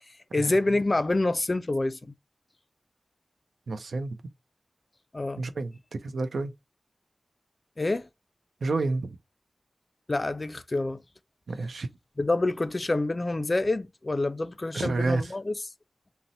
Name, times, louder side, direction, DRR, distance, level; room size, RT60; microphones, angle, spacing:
voice 1, 0.3-2.0 5.1-5.4 7.8-8.1 10.1-11.0 12.2-15.5, left 2 dB, 40° left, 0.3 m, -27 dB
voice 2, 3.7-4.1 5.4-6.5 8.6-9.2 11.5-11.9 14.7-15.3, right 3 dB, 90° right, 0.4 m, -29 dB
2.6 x 2.0 x 3.8 m
wide cardioid pair, 55°, 0 cm